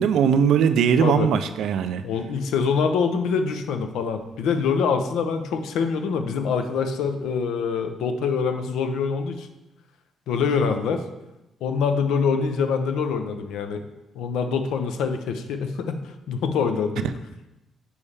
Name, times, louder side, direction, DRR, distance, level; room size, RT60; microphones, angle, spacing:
voice 1, 0.0-2.0, right 7 dB, 80° right, 11 dB, 0.3 m, -20 dB
voice 2, 2.0-9.5 10.3-11.0 11.6-13.8 14.1-16.0 16.3-17.1, left 5 dB, 85° left, 7 dB, 0.6 m, -25 dB
7.0 x 4.2 x 3.3 m, 0.97 s
cardioid pair, 90°, 0 cm